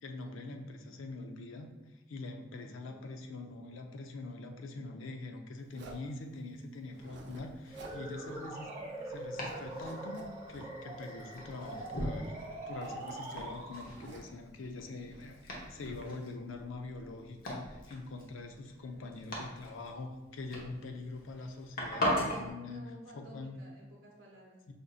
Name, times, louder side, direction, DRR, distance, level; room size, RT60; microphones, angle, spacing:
voice 1, 0.0-8.7 9.1-12.4 12.7-22.8 23.1-23.6 24.7-24.8, left 3 dB, 80° left, 4 dB, 0.4 m, -44 dB
Zipper (clothing), 5.7-6.1 6.9-7.5 7.7-8.0 8.4-8.5 8.8-9.2 9.5-10.7 11.3-12.0 12.2-14.4 15.0-16.0, right 2 dB, 60° right, 0.5 m, -52 dB
Domestic sounds home sounds, 6.9-22.5, equal, 50° left, 0.8 m, -41 dB
sound 1, 7.7-14.2, right 2 dB, 15° right, 0.8 m, -43 dB
voice 2, 7.7-8.2 8.7-9.0 13.5-13.7 18.7-19.3 22.5-24.6, right 1 dB, 85° right, -2 dB, 0.8 m, -55 dB
4.9 x 2.6 x 2.4 m, 1.0 s
head